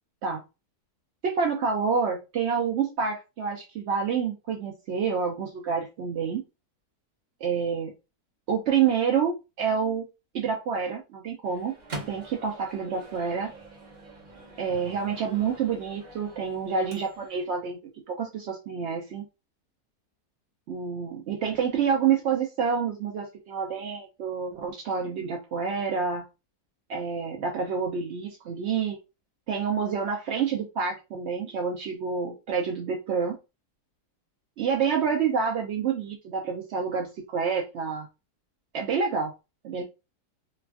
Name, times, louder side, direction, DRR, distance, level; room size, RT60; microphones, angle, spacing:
voice 1, 1.2-6.4 7.4-7.9 8.5-10.0 10.3-11.7 12.1-13.5 14.6-17.8 18.1-19.2 20.7-26.2 26.9-29.0 29.5-33.4 34.6-38.1 38.7-39.3 39.6-39.8, right 6 dB, 75° right, 1 dB, 0.6 m, -28 dB
Microwave oven, 11.4-17.5, right 2 dB, 40° right, 0.7 m, -44 dB
3.0 x 2.3 x 2.4 m, 0.27 s
omnidirectional pair, 1.7 m